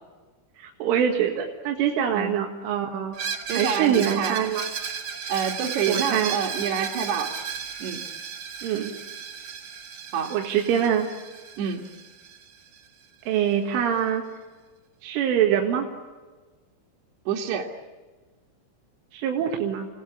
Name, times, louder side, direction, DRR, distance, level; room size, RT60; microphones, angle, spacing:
voice 1, 0.6-3.2 3.6-4.7 5.9-6.4 8.6-8.9 10.3-11.1 13.3-14.2 15.0-15.9 19.1-19.9, right 9 dB, 90° right, 1 dB, 4.3 m, -24 dB
Screech, 3.1-12.8, right 7 dB, 45° right, 2.3 m, -34 dB
voice 2, 3.5-4.4 5.3-7.3 7.8-8.0 10.1-10.4 11.6-11.9 17.3-17.7, right 7 dB, 65° right, -3 dB, 3.6 m, -27 dB
29.5 x 18.0 x 10.0 m, 1.3 s
omnidirectional pair, 5.4 m